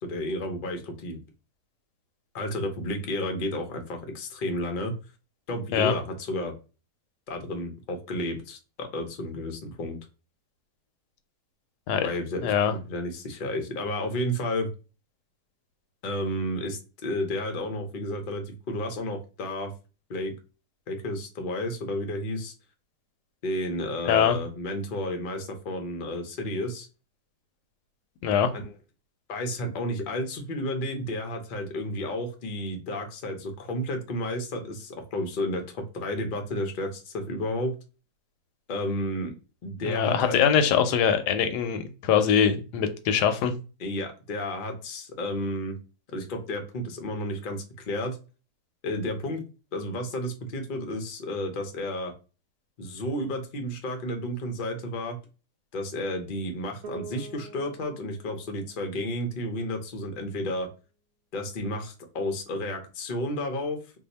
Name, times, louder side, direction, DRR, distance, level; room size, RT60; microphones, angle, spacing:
voice 1, 0.0-1.2 2.3-4.9 5.5-6.5 7.3-10.0 12.0-14.7 16.0-19.7 20.1-20.3 20.9-22.5 23.4-26.9 28.5-28.7 29.3-37.7 38.7-39.3 39.6-40.6 43.8-45.8 46.1-48.2 48.8-49.4 49.7-52.1 52.8-55.2 55.7-60.7 61.3-63.8, left 1 dB, 55° left, 4 dB, 0.5 m, -32 dB
voice 2, 12.4-12.7 24.1-24.4 28.2-28.5 39.8-43.5, left 8 dB, 80° left, 8 dB, 1.1 m, -23 dB
Bass guitar, 56.8-60.7, right 4 dB, 70° right, 1.0 m, -46 dB
2.7 x 2.3 x 4.0 m, 0.32 s
omnidirectional pair, 1.8 m